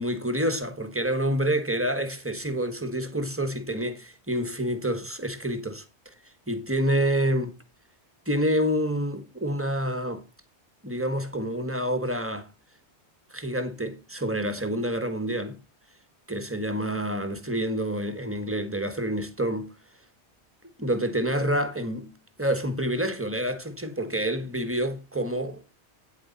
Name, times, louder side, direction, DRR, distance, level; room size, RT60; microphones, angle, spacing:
voice 1, 0.0-5.8 6.5-7.5 8.3-10.2 10.8-12.5 13.3-15.6 16.3-19.7 20.8-22.1 22.4-25.6, equal, 10° right, 1.2 m, -28 dB
9.3 x 8.1 x 4.0 m
omnidirectional pair, 1.2 m